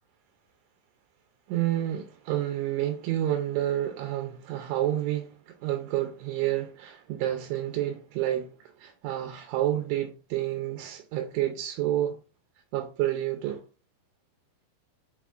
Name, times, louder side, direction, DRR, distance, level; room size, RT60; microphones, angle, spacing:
voice 1, 1.5-12.2 12.7-13.7, right 13 dB, 85° right, 2.9 m, -29 dB
7.0 x 2.4 x 2.3 m
omnidirectional pair, 5.3 m